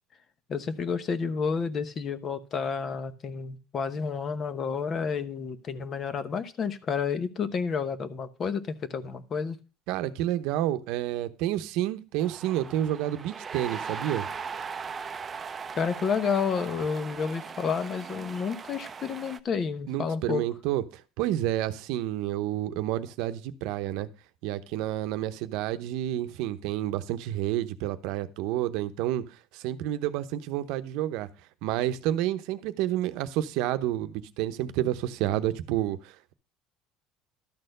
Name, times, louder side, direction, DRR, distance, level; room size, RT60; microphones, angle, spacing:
voice 1, 0.5-9.6 15.7-20.4, left 6 dB, 35° left, 0.9 m, -30 dB
voice 2, 9.9-14.3 19.9-24.1 24.4-29.2 29.5-31.3 31.6-36.3, right 13 dB, 70° right, 0.8 m, -29 dB
sound 1, 12.2-19.4, right 6 dB, 25° right, 0.6 m, -39 dB
12.0 x 4.3 x 6.6 m
cardioid pair, 125°, 0 cm